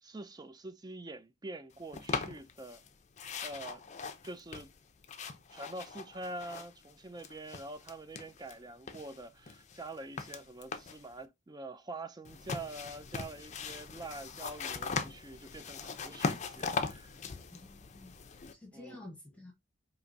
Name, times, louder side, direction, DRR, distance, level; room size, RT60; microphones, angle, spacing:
voice 1, 0.0-2.8 3.4-3.8 4.2-4.7 5.5-17.1 18.7-19.1, right 2 dB, 20° right, 0.4 m, -45 dB
sound 1, 1.9-2.9 3.2-6.9 7.2-8.6 8.9-11.1 12.2-18.5, left 5 dB, 35° left, 0.5 m, -40 dB
voice 2, 17.5-18.2 18.5-19.5, left 2 dB, 5° left, 1.0 m, -50 dB
4.6 x 2.9 x 2.6 m
head